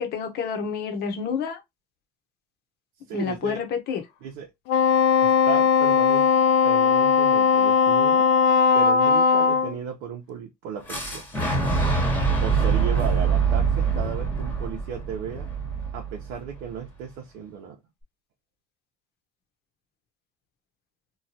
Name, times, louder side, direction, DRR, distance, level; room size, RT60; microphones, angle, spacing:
voice 1, 0.0-1.6 3.1-4.0, left 6 dB, 60° left, 0.8 m, -29 dB
voice 2, 3.1-3.6 4.2-4.5 5.2-6.3 6.6-8.3 8.7-11.2 12.4-15.5 15.9-17.8, right 7 dB, 80° right, 0.6 m, -35 dB
Wind instrument woodwind instrument, 4.7-9.7, left 6 dB, 75° left, 0.4 m, -19 dB
Fire / Explosion, 10.9-16.8, right 5 dB, 10° left, 1.1 m, -24 dB
3.1 x 2.2 x 2.7 m
supercardioid pair, 95°, 19 cm